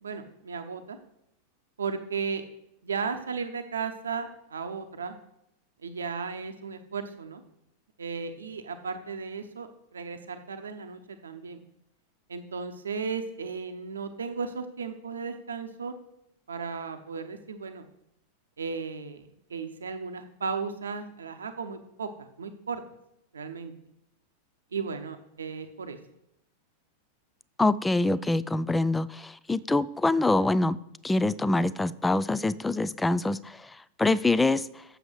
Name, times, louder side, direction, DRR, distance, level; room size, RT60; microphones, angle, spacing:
voice 1, 0.0-1.0 1.8-2.4 2.8-5.2 5.8-7.4 8.0-11.6 12.3-15.9 16.5-17.9 18.6-22.8 23.3-23.7 24.7-26.0, right 5 dB, 70° right, 7 dB, 0.8 m, -35 dB
voice 2, 27.6-30.8 31.0-34.8, left 2 dB, 10° left, 18 dB, 0.3 m, -25 dB
7.9 x 6.9 x 6.2 m, 0.80 s
figure-of-eight pair, 90°, 0 cm